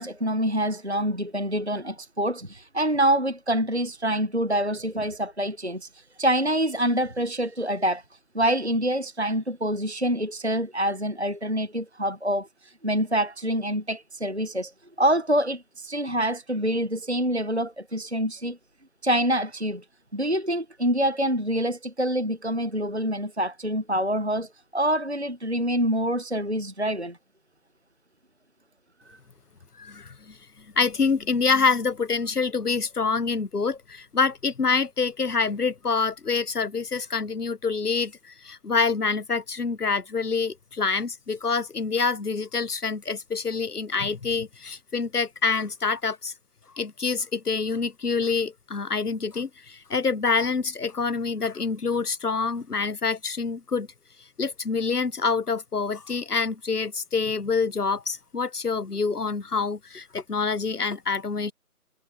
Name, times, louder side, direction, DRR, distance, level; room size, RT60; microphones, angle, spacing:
voice 1, 0.0-8.0 8.3-14.7 15.0-18.6 19.0-19.8 20.1-27.2 29.1-29.2, right 1 dB, 45° right, 0.9 m, -26 dB
voice 2, 29.8-30.4 30.8-46.3 46.7-53.9 54.4-61.5, left 4 dB, 85° left, 1.0 m, -26 dB
figure-of-eight pair, 180°, 45 cm